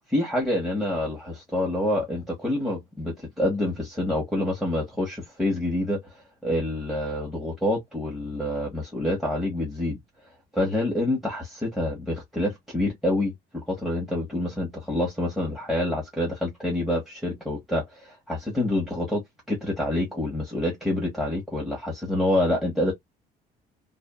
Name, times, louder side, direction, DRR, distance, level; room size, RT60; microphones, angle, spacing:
voice 1, 0.1-6.0 6.4-10.0 10.5-19.2 19.5-22.9, left 1 dB, ahead, 1.1 m, -27 dB
2.5 x 2.5 x 2.3 m
cardioid pair, 110°, 17 cm